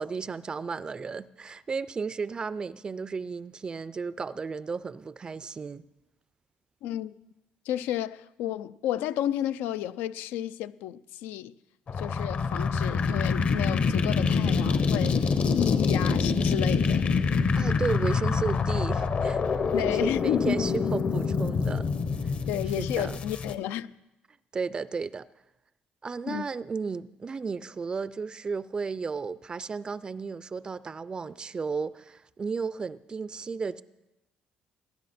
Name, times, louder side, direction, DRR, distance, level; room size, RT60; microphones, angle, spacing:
voice 1, 0.0-5.8 17.6-19.4 19.8-21.9 22.8-23.2 24.5-25.3 26.0-33.8, right 5 dB, 25° right, 0.4 m, -34 dB
voice 2, 6.8-7.1 7.7-11.5 12.0-15.2 15.5-17.1 19.7-20.6 22.5-23.9 26.3-26.4, left 11 dB, 90° left, 0.4 m, -32 dB
sound 1, 11.9-23.5, left 5 dB, 40° left, 0.7 m, -26 dB
18.5 x 10.5 x 4.3 m
cardioid pair, 120°, 3 cm